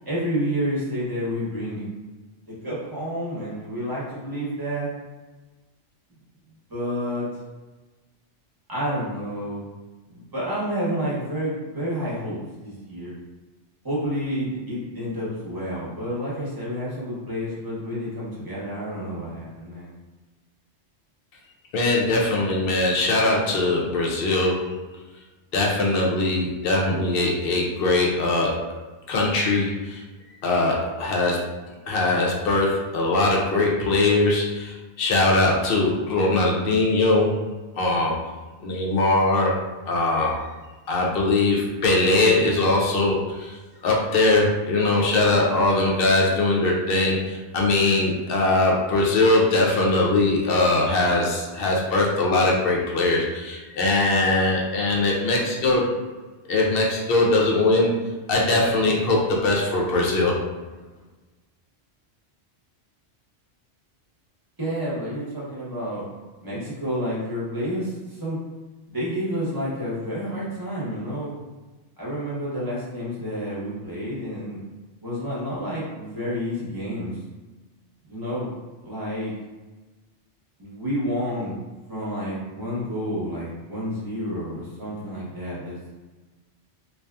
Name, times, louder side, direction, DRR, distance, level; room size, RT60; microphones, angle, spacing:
voice 1, 0.1-1.9 2.5-4.9 6.7-7.3 8.7-9.7 10.1-13.1 13.8-19.9 64.6-66.0 66.4-68.4 68.9-71.3 72.0-74.6 75.0-77.2 78.1-78.5 78.8-79.3 80.6-81.6 81.9-85.8, equal, 20° right, -7 dB, 0.7 m, -29 dB
voice 2, 21.7-24.8 25.5-28.8 29.1-30.0 30.4-31.5 31.9-38.2 38.6-39.6 39.9-40.4 40.9-43.6 43.8-56.0 56.5-57.9 58.3-60.4, left 2 dB, 65° left, -2 dB, 0.7 m, -21 dB
2.7 x 2.4 x 2.3 m, 1.2 s
omnidirectional pair, 1.2 m